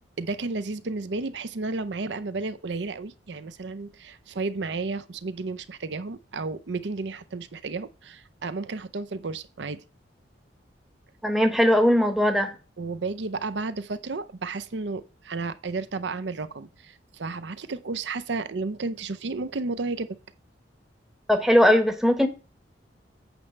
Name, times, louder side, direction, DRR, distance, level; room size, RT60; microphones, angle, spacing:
voice 1, 0.2-9.8 12.8-20.1, right 3 dB, 70° right, 0.6 m, -32 dB
voice 2, 11.2-12.5 21.3-22.3, equal, ahead, 0.9 m, -19 dB
9.1 x 3.3 x 6.5 m
head